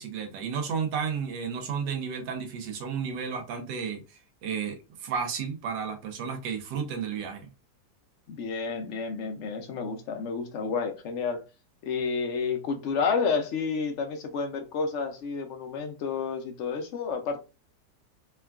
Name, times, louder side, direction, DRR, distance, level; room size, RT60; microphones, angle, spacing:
voice 1, 0.0-7.5 10.6-10.7, right 6 dB, 90° right, 1.4 m, -33 dB
voice 2, 8.3-11.4 11.8-17.4, left 5 dB, 85° left, 0.6 m, -30 dB
3.5 x 2.2 x 2.3 m
omnidirectional pair, 1.8 m